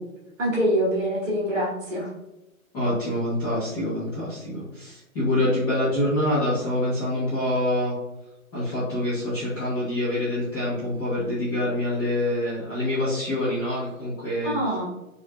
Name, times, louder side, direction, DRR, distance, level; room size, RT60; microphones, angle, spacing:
voice 1, 0.4-2.1 14.4-14.8, equal, ahead, -31 dB, 0.5 m, -24 dB
voice 2, 2.7-7.9 8.5-14.5, left 1 dB, 15° left, -12 dB, 1.1 m, -26 dB
5.3 x 2.7 x 2.3 m, 0.96 s
hypercardioid pair, 165°, 42 cm